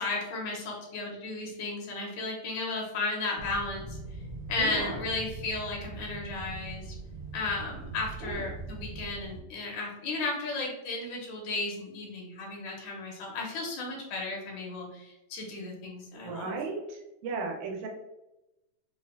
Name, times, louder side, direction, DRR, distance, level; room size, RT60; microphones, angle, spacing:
voice 1, 0.0-4.0 4.5-6.9 7.3-16.6, left 3 dB, 80° left, -1 dB, 2.1 m, -34 dB
sound 1, 3.4-9.4, right 3 dB, 60° right, 1.1 m, -41 dB
voice 2, 4.6-5.0 8.2-8.4 16.2-17.9, right 4 dB, 80° right, 1 dB, 2.1 m, -35 dB
5.5 x 2.4 x 2.2 m, 0.94 s
omnidirectional pair, 3.4 m